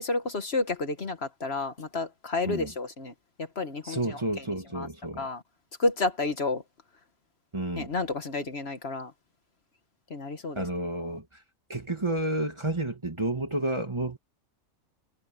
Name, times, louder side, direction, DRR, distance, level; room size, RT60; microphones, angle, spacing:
voice 1, 0.0-3.1 3.4-4.4 4.7-4.9 5.2-5.4 5.8-6.6 7.8-9.1 10.1-10.6 10.9-11.2, left 3 dB, 50° left, 1.6 m, -31 dB
voice 2, 3.8-5.3 7.5-7.9 10.6-11.4 11.7-14.2, right 1 dB, 20° right, 1.9 m, -31 dB
omnidirectional pair, 1.4 m